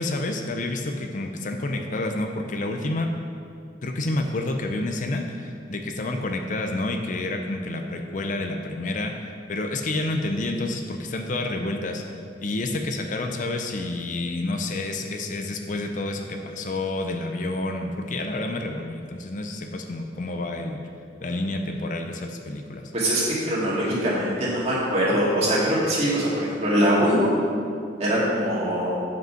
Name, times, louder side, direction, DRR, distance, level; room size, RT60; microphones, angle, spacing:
voice 1, 0.0-3.1 3.8-12.0 12.4-20.8 21.2-22.9, left 2 dB, 45° left, 4 dB, 0.5 m, -29 dB
voice 2, 22.9-27.3 28.0-29.0, equal, 35° right, -7 dB, 2.2 m, -22 dB
7.9 x 5.3 x 5.8 m, 2.3 s
head